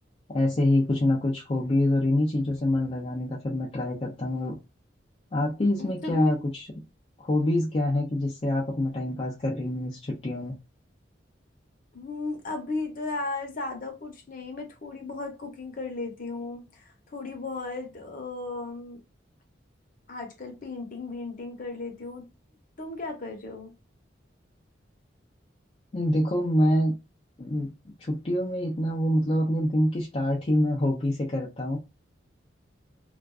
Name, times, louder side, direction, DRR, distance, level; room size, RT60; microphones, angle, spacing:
voice 1, 0.3-4.6 5.3-6.7 7.2-10.6 25.9-27.0 27.4-27.7 28.0-31.8, left 1 dB, 30° left, 0.5 m, -26 dB
voice 2, 5.8-6.4 11.9-19.0 20.1-22.2 22.8-23.7, left 3 dB, 50° left, 0.8 m, -35 dB
2.4 x 2.3 x 2.3 m
head